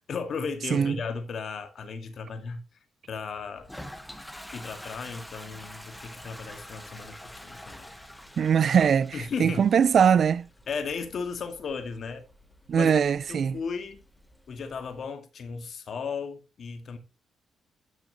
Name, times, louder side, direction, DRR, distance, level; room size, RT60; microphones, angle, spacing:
voice 1, 0.1-2.6 3.1-3.7 4.5-7.9 9.1-9.7 10.7-12.2 12.7-12.9 13.3-14.0 14.5-17.0, left 5 dB, 60° left, 2.0 m, -35 dB
voice 2, 0.7-1.0 8.4-10.5 12.7-13.6, right 7 dB, 55° right, 0.5 m, -22 dB
Toilet flush, 3.6-15.0, left 1 dB, 5° left, 1.4 m, -47 dB
12.0 x 6.3 x 3.1 m
cardioid pair, 80°, 0 cm